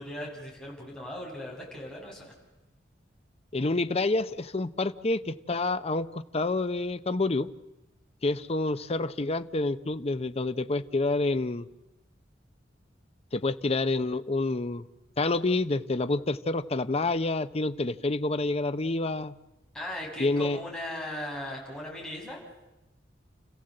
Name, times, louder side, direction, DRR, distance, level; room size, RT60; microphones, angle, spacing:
voice 1, 0.0-2.3 19.7-22.4, left 1 dB, 5° left, -4 dB, 7.1 m, -38 dB
voice 2, 3.5-7.5 8.2-11.7 13.3-14.9 15.2-19.3 20.2-20.6, left 2 dB, 35° left, 11 dB, 0.7 m, -28 dB
30.0 x 15.5 x 7.8 m, 0.99 s
head